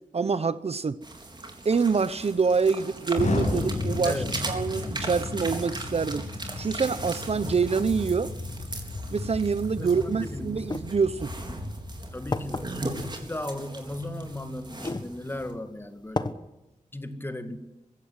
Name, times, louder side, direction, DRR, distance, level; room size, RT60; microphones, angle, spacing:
voice 1, 0.1-1.0 1.6-6.3 6.6-8.3 9.1-11.3, right 5 dB, 50° right, 0.8 m, -26 dB
sound 1, 1.0-15.5, right 2 dB, 35° right, 3.9 m, -39 dB
Explosion, 3.1-13.1, left 2 dB, 65° left, 6.5 m, -34 dB
voice 2, 4.0-4.5 9.8-10.8 12.1-16.4 16.9-17.6, left 1 dB, 15° left, 2.1 m, -36 dB
sound 2, 10.6-10.8 11.7-11.8 12.3-12.6 13.9-14.0 14.7-15.1 15.6-15.7 16.2-16.3, left 2 dB, 30° left, 1.1 m, -30 dB
22.0 x 16.0 x 9.7 m
wide cardioid pair, 125°, 14 cm